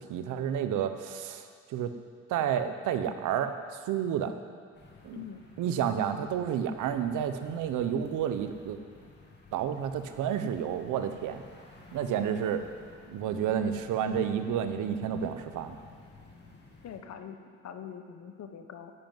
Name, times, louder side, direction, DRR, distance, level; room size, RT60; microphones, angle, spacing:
voice 1, 0.0-1.9 2.3-3.5 3.9-4.4 5.0-5.2 5.6-8.8 9.5-11.4 11.9-12.6 13.1-15.7, right 8 dB, 85° right, 9 dB, 0.9 m, -30 dB
sound 1, 4.7-17.0, left 3 dB, 35° left, 2.3 m, -54 dB
voice 2, 5.1-5.4 16.8-17.4 17.6-18.9, left 8 dB, 60° left, 7 dB, 1.2 m, -43 dB
10.0 x 8.0 x 9.1 m, 2.1 s
cardioid pair, 90°, 30 cm